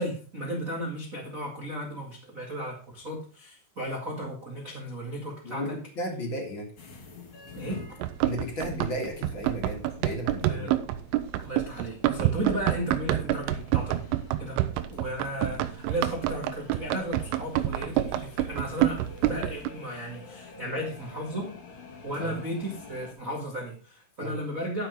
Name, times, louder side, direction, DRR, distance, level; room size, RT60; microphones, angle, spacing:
voice 1, 0.0-5.7 7.5-7.8 10.3-10.8 11.4-14.0 14.4-14.6 14.9-24.9, equal, 70° right, -2 dB, 0.7 m, -35 dB
voice 2, 5.4-6.7 8.2-10.7 22.2-22.3 24.2-24.3, equal, 50° left, 1 dB, 1.5 m, -34 dB
sound 1, 6.8-23.1, left 4 dB, 85° left, 1.1 m, -49 dB
Run, 8.0-19.7, right 14 dB, 90° right, 3.3 m, -28 dB
12.0 x 6.0 x 5.2 m, 0.38 s
omnidirectional pair, 5.6 m